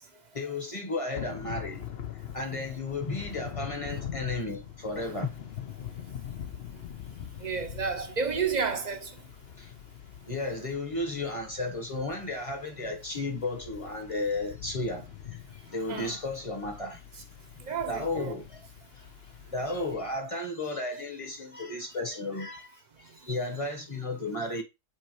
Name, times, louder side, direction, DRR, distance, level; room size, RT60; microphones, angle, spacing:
voice 1, 0.3-1.9 2.3-5.4 9.6-9.7 10.3-17.0 17.5-18.6 19.0-19.1 19.5-24.6, left 2 dB, 30° left, 1.2 m, -34 dB
Thunder / Rain, 1.1-20.2, left 10 dB, 60° left, 1.0 m, -43 dB
voice 2, 7.4-9.1 15.9-16.2 17.7-18.3, right 5 dB, 40° right, 0.9 m, -31 dB
7.7 x 4.2 x 3.1 m
omnidirectional pair, 1.3 m